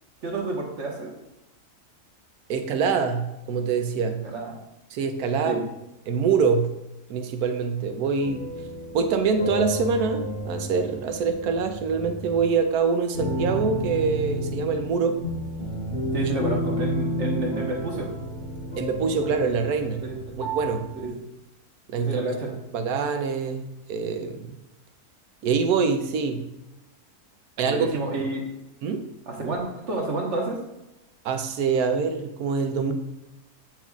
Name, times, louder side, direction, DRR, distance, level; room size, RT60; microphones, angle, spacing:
voice 1, 0.2-1.1 4.2-4.5 5.4-5.6 16.1-18.1 20.0-20.2 21.0-21.1 22.0-22.5 27.6-28.5 29.3-30.6, right 2 dB, 50° right, -1 dB, 1.5 m, -29 dB
voice 2, 2.5-4.3 4.9-5.7 6.1-6.8 7.1-8.5 8.9-15.2 16.2-16.3 18.8-20.0 20.4-20.9 21.9-22.2 22.7-24.6 25.4-26.5 27.6-27.9 28.8-29.1 31.2-32.9, right 5 dB, 80° right, 7 dB, 1.1 m, -25 dB
sound 1, 8.2-12.5 13.1-21.1, equal, 65° left, 3.0 m, -31 dB
8.0 x 6.0 x 2.4 m, 0.94 s
omnidirectional pair, 1.6 m